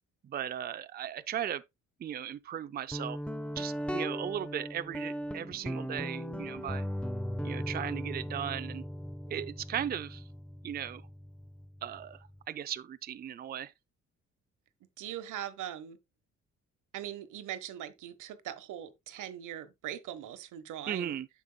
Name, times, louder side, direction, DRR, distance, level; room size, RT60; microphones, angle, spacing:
voice 1, 0.2-1.6 2.0-3.2 3.6-6.9 7.4-8.8 9.3-10.3 10.6-11.0 11.8-13.7 19.1-19.2 20.9-21.3, right 10 dB, 30° right, 0.4 m, -37 dB
Guitar, 2.9-12.4, equal, 5° left, 0.7 m, -38 dB
voice 2, 15.0-16.0 16.9-21.2, right 11 dB, 80° right, 1.2 m, -41 dB
9.6 x 6.8 x 2.2 m
cardioid pair, 90°, 30 cm